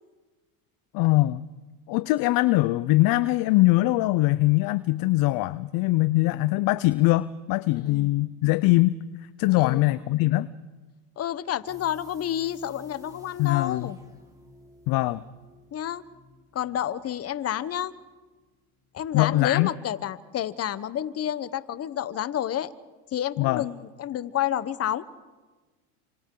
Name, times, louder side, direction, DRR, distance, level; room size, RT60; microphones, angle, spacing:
voice 1, 0.9-1.4 1.9-8.9 9.4-10.5 13.4-13.9 14.9-15.2 19.1-19.7 23.4-23.6, left 19 dB, 50° left, 16 dB, 0.7 m, -22 dB
voice 2, 7.7-8.1 9.6-9.8 11.2-14.0 15.7-16.0 16.5-17.9 18.9-22.7 23.1-25.0, left 11 dB, 30° left, 16 dB, 1.0 m, -30 dB
sound 1, 11.7-18.5 18.8-18.9, left 1 dB, 10° right, 3.8 m, -52 dB
30.0 x 26.5 x 3.9 m, 1.3 s
supercardioid pair, 110°, 46 cm